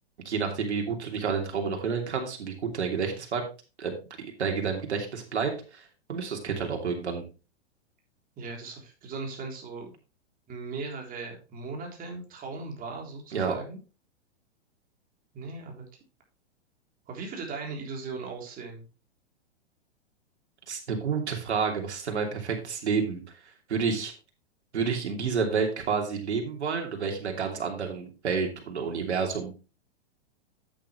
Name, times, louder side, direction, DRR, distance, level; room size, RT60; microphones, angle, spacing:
voice 1, 0.2-3.4 3.8-3.9 4.4-5.8 6.1-7.2 13.3-13.6 20.7-23.2 23.7-24.1 24.7-29.5, right 5 dB, 85° right, 2 dB, 3.0 m, -29 dB
voice 2, 8.4-9.9 10.5-13.8 15.3-15.8 17.1-18.8, right 4 dB, 25° right, 1 dB, 3.5 m, -38 dB
9.3 x 8.7 x 3.2 m, 0.33 s
hypercardioid pair, 135°, 33 cm